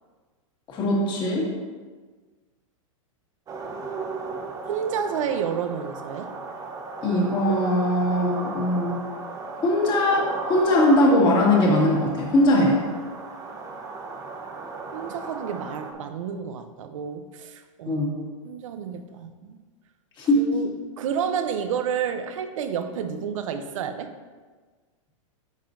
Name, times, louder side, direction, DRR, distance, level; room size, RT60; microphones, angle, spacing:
voice 1, 0.7-1.5 7.0-9.0 9.6-12.8 17.9-18.1 20.2-20.5, left 1 dB, 25° left, -3 dB, 1.9 m, -20 dB
sound 1, 3.5-15.9, right 3 dB, 20° right, 0.7 m, -36 dB
voice 2, 4.6-6.3 14.9-19.6 20.3-24.1, right 7 dB, 70° right, 9 dB, 0.7 m, -30 dB
9.0 x 5.6 x 2.6 m, 1.4 s
hypercardioid pair, 135°, 17 cm